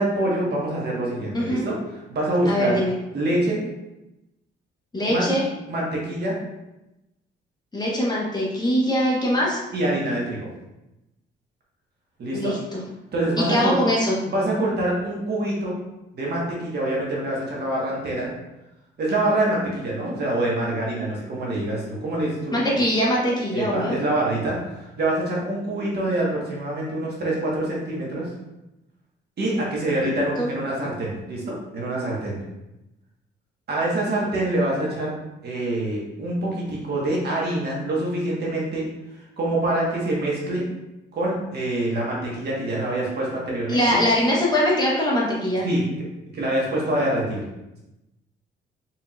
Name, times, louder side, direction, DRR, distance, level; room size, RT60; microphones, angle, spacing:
voice 1, 0.0-1.7 2.1-2.8 3.1-3.6 5.1-5.3 5.7-6.4 9.7-10.5 12.2-12.5 13.1-13.8 14.2-15.7 16.1-18.3 19.0-22.6 23.5-28.3 29.4-32.4 33.7-35.1 35.4-38.9 39.4-40.6 41.1-44.0 45.6-45.8 46.3-47.4, right 1 dB, 55° right, -4 dB, 1.5 m, -25 dB
voice 2, 1.3-1.7 2.5-2.9 4.9-5.4 7.7-9.6 12.3-12.8 13.4-14.2 22.5-24.0 30.0-30.1 30.4-30.5 43.7-45.7, equal, 20° left, -4 dB, 1.2 m, -22 dB
4.4 x 3.7 x 2.5 m, 0.95 s
cardioid pair, 90°, 20 cm